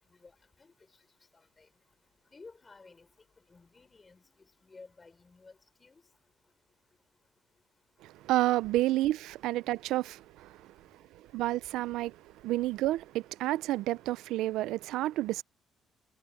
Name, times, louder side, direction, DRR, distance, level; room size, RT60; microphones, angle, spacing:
voice 1, 1.3-1.7 2.3-3.1 3.5-6.0, left 4 dB, 20° left, 4.7 m, -54 dB
voice 2, 8.0-10.6 11.3-12.2 12.4-15.4, right 16 dB, 80° right, 0.5 m, -30 dB
cardioid pair, 160°, 0 cm